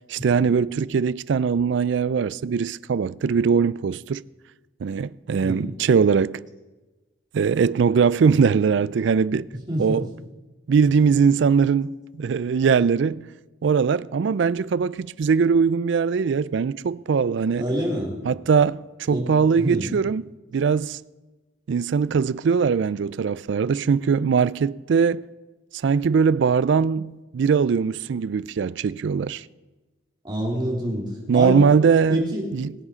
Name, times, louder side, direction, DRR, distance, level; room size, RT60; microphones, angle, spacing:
voice 1, 0.1-4.2 4.8-6.4 7.3-9.5 9.8-10.1 10.7-13.3 13.6-17.6 18.2-20.2 20.5-21.0 21.7-25.3 25.7-29.4 31.3-32.7, right 6 dB, 60° right, 0.3 m, -21 dB
voice 2, 9.7-10.1 17.6-18.2 19.1-19.9 30.2-31.7 32.1-32.5, equal, 20° right, 3.2 m, -27 dB
21.5 x 7.3 x 5.1 m
head